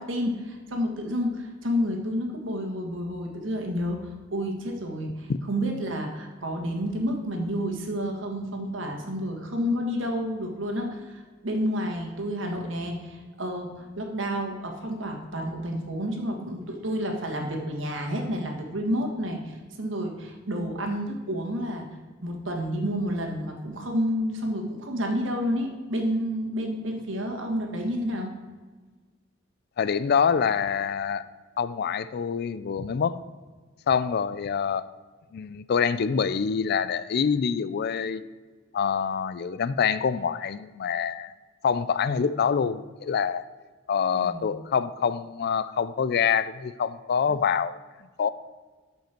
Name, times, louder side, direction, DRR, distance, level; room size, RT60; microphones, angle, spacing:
voice 1, 0.0-21.9 22.2-28.3 44.1-44.5, equal, 65° right, 2 dB, 1.6 m, -30 dB
voice 2, 29.8-31.2 31.6-33.2 33.9-34.9 35.3-38.2 38.7-41.3 41.6-43.4 43.9-47.8 48.2-48.3, left 6 dB, 50° left, 15 dB, 0.4 m, -26 dB
13.0 x 5.4 x 4.4 m, 1.4 s
head